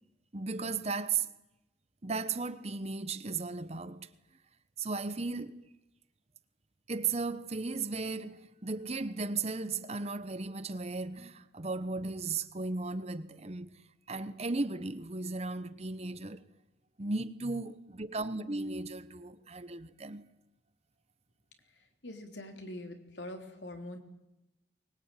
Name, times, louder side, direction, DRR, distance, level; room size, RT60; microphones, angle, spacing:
voice 1, 0.3-1.3 2.0-4.1 4.8-5.7 6.9-13.8 14.1-16.5 17.0-20.3, right 3 dB, 35° right, 1.0 m, -36 dB
voice 2, 22.0-24.0, left 1 dB, 75° left, 3.5 m, -43 dB
23.5 x 21.5 x 9.2 m
head